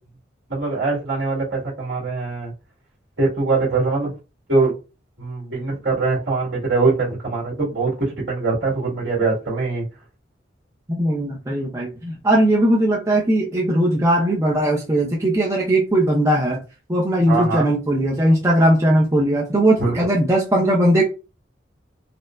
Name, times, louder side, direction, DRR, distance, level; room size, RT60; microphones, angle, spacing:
voice 1, 0.5-2.5 3.2-4.1 4.5-4.7 5.2-9.9 17.3-17.7 19.8-19.9, right 3 dB, 65° right, -5 dB, 1.8 m, -22 dB
voice 2, 10.9-16.6 16.9-21.0, right 1 dB, 15° right, -3 dB, 0.6 m, -19 dB
4.3 x 2.1 x 2.4 m, 0.31 s
head